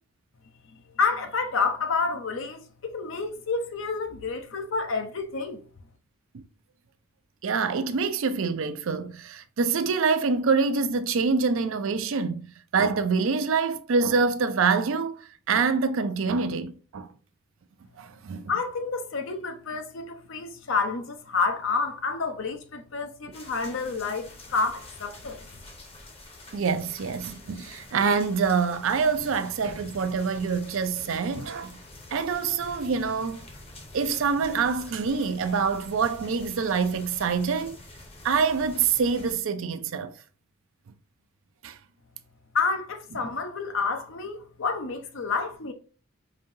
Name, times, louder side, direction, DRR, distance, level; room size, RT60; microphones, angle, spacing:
voice 1, 0.7-5.6 18.5-25.4 42.5-45.7, left 4 dB, 60° left, 0.6 m, -29 dB
voice 2, 7.4-12.5 12.7-17.1 18.0-18.5 26.5-31.8 32.1-33.5 33.9-37.7 38.2-40.1 41.6-41.8, right 5 dB, 60° right, 0.4 m, -26 dB
sound 1, 23.3-39.3, left 2 dB, 25° left, 0.8 m, -46 dB
5.0 x 2.7 x 2.6 m
head